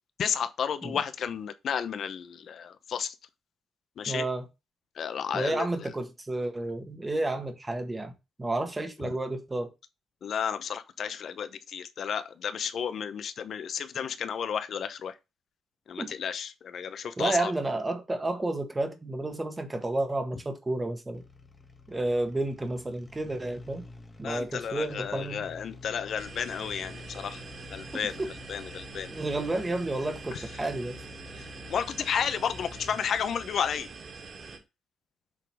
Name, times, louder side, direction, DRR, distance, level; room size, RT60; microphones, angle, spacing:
voice 1, 0.2-3.1 4.0-4.2 5.0-5.9 10.2-15.1 15.9-17.5 24.2-27.4 27.7-28.2 28.5-29.1 30.3-30.4 31.3-31.4 31.7-33.9, left 7 dB, 60° left, 0.8 m, -32 dB
voice 2, 4.1-4.4 5.3-9.7 16.0-16.1 17.2-21.2 21.9-23.8 24.2-25.5 28.2-28.3 29.1-31.0, right 2 dB, 15° right, 1.5 m, -31 dB
sound 1, 21.1-33.2, left 3 dB, 15° left, 1.3 m, -49 dB
sound 2, 26.2-34.6, right 4 dB, 40° right, 2.4 m, -44 dB
7.4 x 4.0 x 4.8 m
cardioid pair, 130°, 0 cm